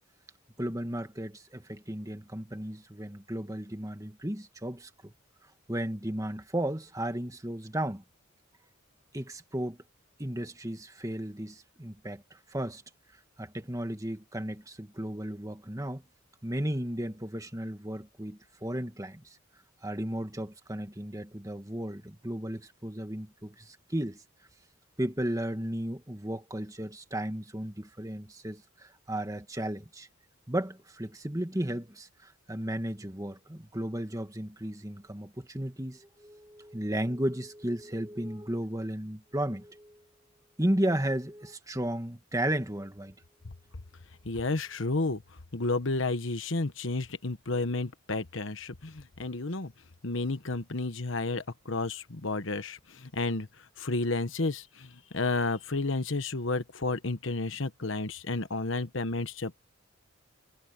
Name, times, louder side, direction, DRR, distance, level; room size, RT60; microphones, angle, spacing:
voice 1, 0.6-5.1 5.7-8.0 9.1-9.8 10.2-12.2 12.5-12.8 13.4-16.0 16.4-19.4 19.8-24.2 25.0-30.1 30.5-40.0 40.6-43.1, right 1 dB, 15° right, 1.9 m, -34 dB
voice 2, 44.2-45.2 45.5-49.7 50.0-53.5 53.8-59.6, left 3 dB, 65° left, 1.2 m, -31 dB
head